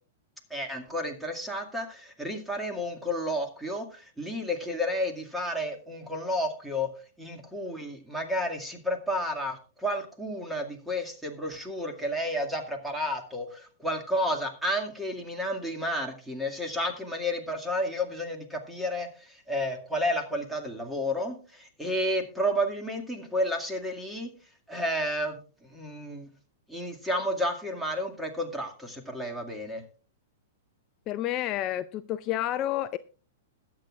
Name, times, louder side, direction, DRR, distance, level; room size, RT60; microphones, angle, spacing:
voice 1, 0.5-6.9 7.2-24.3 24.7-26.3 26.7-29.8, equal, 5° right, 2.1 m, -31 dB
voice 2, 31.1-33.0, left 13 dB, 35° left, 0.4 m, -30 dB
21.0 x 8.1 x 2.4 m
figure-of-eight pair, 105°, 0 cm